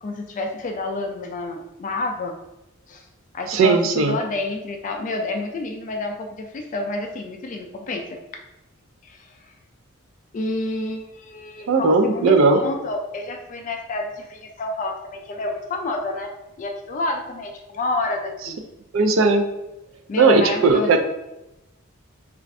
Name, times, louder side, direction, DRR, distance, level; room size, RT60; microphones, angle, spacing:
voice 1, 0.0-2.4 2.9-3.0 3.3-8.2 9.0-9.4 10.3-16.3 16.6-18.6 20.1-21.0, left 2 dB, 35° left, 3 dB, 0.3 m, -29 dB
voice 2, 3.5-4.2 11.7-12.6 18.9-19.5 20.2-21.0, right 3 dB, 60° right, 6 dB, 0.3 m, -17 dB
2.5 x 2.4 x 3.2 m, 0.93 s
head